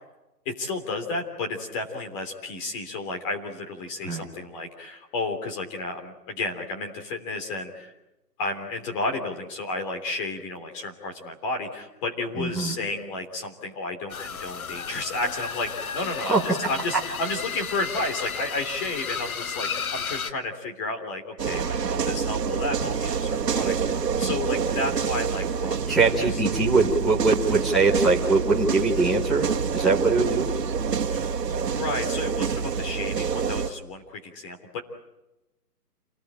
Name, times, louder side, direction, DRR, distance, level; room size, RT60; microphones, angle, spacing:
voice 1, 0.4-7.9 8.4-25.8 26.0-26.4 31.1-34.8, left 2 dB, 20° left, 4 dB, 3.2 m, -32 dB
voice 2, 12.3-12.7 16.3-16.4 25.9-29.5 29.7-30.5, right 3 dB, ahead, -9 dB, 0.9 m, -22 dB
sound 1, 14.1-20.3, left 6 dB, 60° left, 1.5 m, -33 dB
sound 2, 21.4-33.7, right 6 dB, 75° right, 1.8 m, -27 dB
29.0 x 19.5 x 8.9 m, 0.98 s
hypercardioid pair, 165°, 48 cm